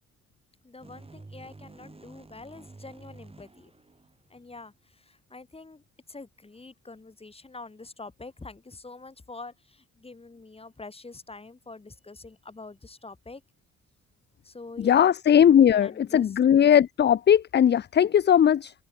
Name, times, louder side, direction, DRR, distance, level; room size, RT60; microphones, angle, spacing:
voice 1, 0.6-3.7 4.3-13.4 14.4-15.0 15.5-16.4, left 3 dB, 20° left, 2.6 m, -45 dB
sound 1, 0.8-4.6, right 3 dB, 20° right, 4.9 m, -49 dB
voice 2, 14.8-18.7, left 9 dB, 35° left, 0.5 m, -19 dB
cardioid pair, 90°, 30 cm